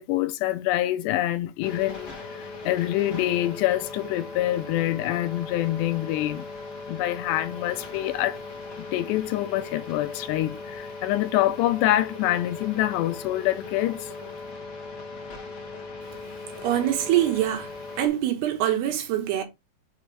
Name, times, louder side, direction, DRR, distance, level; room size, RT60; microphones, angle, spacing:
voice 1, 0.0-6.4 6.9-8.4 8.8-14.1, left 14 dB, 80° left, 2.7 m, -26 dB
sound 1, 1.6-18.1, left 3 dB, 50° left, 1.5 m, -39 dB
voice 2, 16.6-17.7 18.0-19.4, right 12 dB, 75° right, 2.9 m, -24 dB
6.9 x 3.2 x 4.6 m
omnidirectional pair, 5.0 m